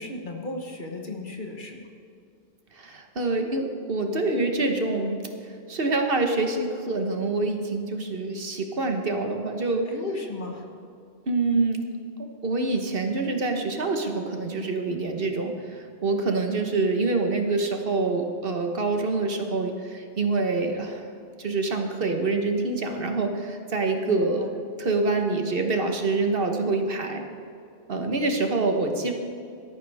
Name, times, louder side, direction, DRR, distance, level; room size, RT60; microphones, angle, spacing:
voice 1, 0.0-1.8 9.9-10.7 24.1-24.5, left 2 dB, 50° left, 2 dB, 1.5 m, -35 dB
voice 2, 2.7-5.2 5.7-9.9 11.3-11.8 12.2-21.1 21.4-24.4 24.8-27.2 27.9-29.1, right 3 dB, 65° right, 4 dB, 1.4 m, -26 dB
17.0 x 13.0 x 3.5 m, 2.5 s
omnidirectional pair, 1.1 m